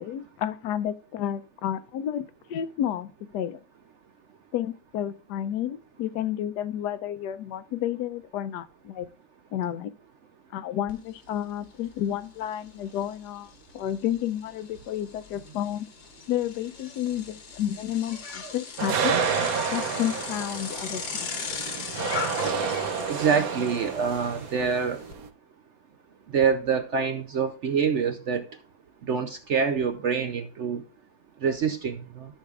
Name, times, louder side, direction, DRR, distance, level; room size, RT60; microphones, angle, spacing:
voice 1, 0.0-3.6 4.5-9.1 9.5-9.9 10.5-15.9 16.3-19.1 19.7-21.3, left 11 dB, 70° left, 1.1 m, -31 dB
Bicycle, 10.9-11.0 11.4-25.1, left 6 dB, 90° left, 2.2 m, -39 dB
sound 1, 18.8-25.3, right 6 dB, 60° right, 1.2 m, -30 dB
voice 2, 23.1-25.0 26.3-28.4 29.1-30.8 31.4-32.3, right 6 dB, 75° right, 0.6 m, -26 dB
13.0 x 6.5 x 2.4 m
omnidirectional pair, 2.0 m